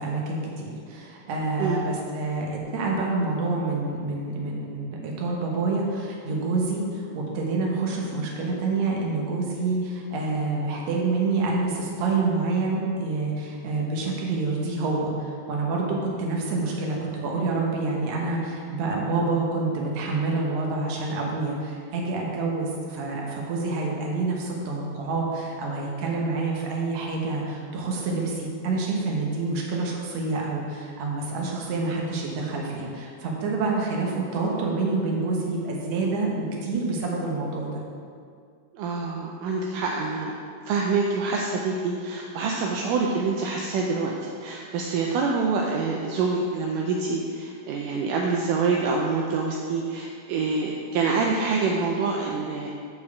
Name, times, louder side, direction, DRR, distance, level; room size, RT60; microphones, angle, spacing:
voice 1, 0.0-37.8, right 3 dB, 60° right, -2 dB, 2.3 m, -27 dB
voice 2, 38.7-40.3 40.7-52.7, right 4 dB, 80° right, -1 dB, 2.2 m, -26 dB
8.4 x 4.5 x 7.0 m, 2.3 s
omnidirectional pair, 3.9 m